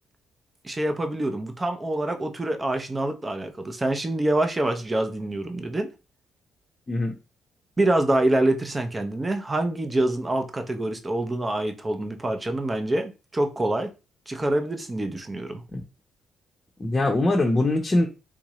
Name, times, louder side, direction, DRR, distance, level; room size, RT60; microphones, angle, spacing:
voice 1, 0.6-5.9 7.8-13.9 14.3-15.6, right 1 dB, 20° right, 0.6 m, -26 dB
voice 2, 16.8-18.1, left 2 dB, 25° left, 0.7 m, -22 dB
3.6 x 2.7 x 3.0 m
cardioid pair, 90°, 0 cm